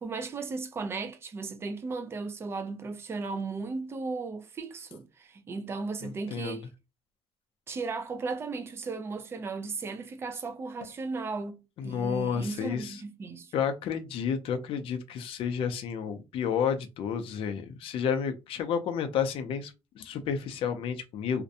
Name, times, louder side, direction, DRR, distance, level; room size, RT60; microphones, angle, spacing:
voice 1, 0.0-6.7 7.7-13.5, right 4 dB, 20° right, 0.3 m, -36 dB
voice 2, 6.0-6.6 11.8-13.0 13.5-21.4, left 7 dB, 55° left, 0.4 m, -31 dB
2.5 x 2.1 x 2.7 m
cardioid pair, 160°, 11 cm